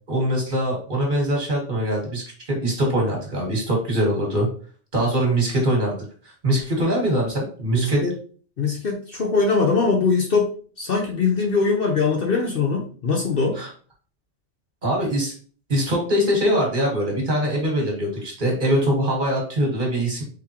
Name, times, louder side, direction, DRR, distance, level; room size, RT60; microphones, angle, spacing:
voice 1, 0.1-4.5 4.9-6.0 6.2-8.0 13.5-13.7 14.8-15.3 15.7-20.2, equal, 40° right, -1 dB, 1.5 m, -22 dB
voice 2, 7.7-8.1 8.6-10.5 10.8-13.6, left 4 dB, 55° left, 0 dB, 0.8 m, -22 dB
3.7 x 3.5 x 2.9 m, 0.43 s
omnidirectional pair, 1.3 m